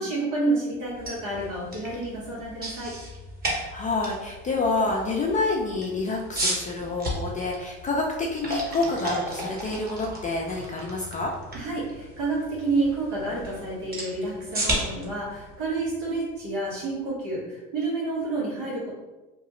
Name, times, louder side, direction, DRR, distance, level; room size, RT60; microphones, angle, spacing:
voice 1, 0.0-2.9 11.5-18.9, right 3 dB, 90° right, -5 dB, 1.4 m, -29 dB
sound 1, 0.8-16.8, right 1 dB, 25° right, 1.0 m, -35 dB
voice 2, 3.5-11.3, left 3 dB, 20° left, -1 dB, 0.4 m, -28 dB
2.8 x 2.3 x 3.0 m, 1.1 s
supercardioid pair, 95°, 37 cm